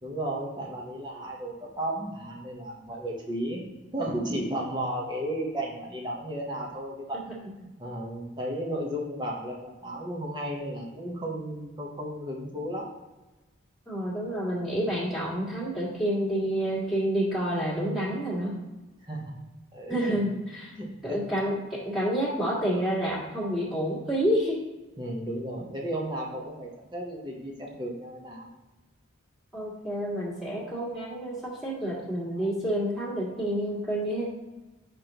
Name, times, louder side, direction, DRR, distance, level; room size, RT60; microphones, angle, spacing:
voice 1, 0.0-3.6 3.9-7.2 7.6-12.9 19.0-19.3 19.7-20.4 20.8-21.2 25.0-28.5, right 1 dB, 20° right, -3 dB, 1.0 m, -34 dB
voice 2, 13.9-18.5 19.9-20.7 21.0-24.6 29.5-34.3, equal, ahead, -8 dB, 1.9 m, -29 dB
8.3 x 5.2 x 3.0 m, 1.1 s
head